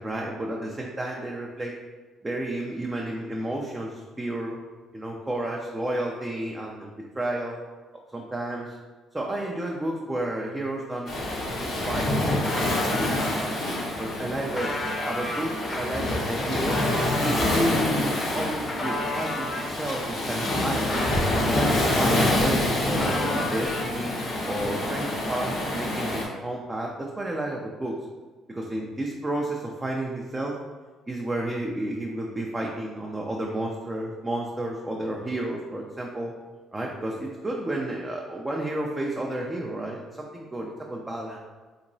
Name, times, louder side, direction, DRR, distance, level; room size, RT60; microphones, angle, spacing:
voice 1, 0.0-1.8 2.2-4.6 4.9-7.6 8.1-8.8 9.1-11.3 11.6-13.6 14.0-16.8 17.2-21.1 21.5-24.1 24.5-28.0 28.5-30.6 31.1-36.3 36.7-41.4, right 1 dB, 15° right, -2 dB, 0.4 m, -31 dB
Waves surf, 11.1-26.2, left 1 dB, 65° left, 1.0 m, -27 dB
sound 1, 11.8-13.3 13.9-19.7 20.2-22.1 22.4-24.3, left 1 dB, 30° left, 0.8 m, -34 dB
3.5 x 2.9 x 2.6 m, 1.3 s
cardioid pair, 95°, 0 cm